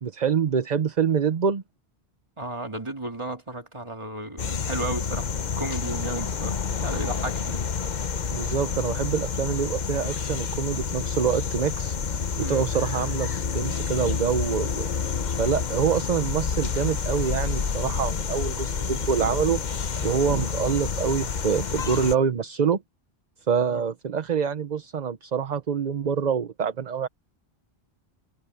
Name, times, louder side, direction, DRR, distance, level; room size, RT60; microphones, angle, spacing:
voice 1, 0.0-1.6 8.3-14.9 15.4-19.6 20.0-22.8 23.5-27.1, right 7 dB, 45° right, 0.9 m, -26 dB
voice 2, 2.4-7.6 12.4-12.7 23.7-23.8, right 2 dB, 25° right, 2.5 m, -34 dB
sound 1, 4.4-22.2, left 6 dB, 45° left, 0.9 m, -29 dB
omnidirectional pair, 1.1 m